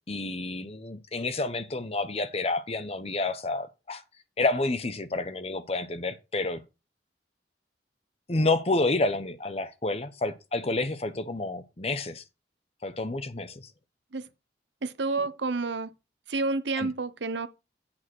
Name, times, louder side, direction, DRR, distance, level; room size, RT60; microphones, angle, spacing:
voice 1, 0.1-4.0 4.4-6.6 8.3-12.2 12.8-13.7 16.8-16.9, left 2 dB, 35° left, 0.9 m, -29 dB
voice 2, 14.8-15.9 16.3-17.5, right 3 dB, 85° right, 0.8 m, -29 dB
8.8 x 4.8 x 6.2 m
head